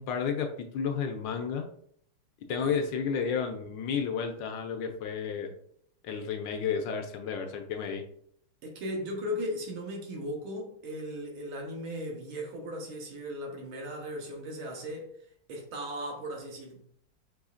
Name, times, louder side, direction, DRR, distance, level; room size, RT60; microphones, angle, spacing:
voice 1, 0.0-1.7 2.5-5.5 6.0-8.0, left 6 dB, 75° left, 1.1 m, -32 dB
voice 2, 8.6-15.1 15.5-16.8, equal, 70° right, 1.7 m, -37 dB
6.1 x 3.1 x 2.4 m
omnidirectional pair, 2.4 m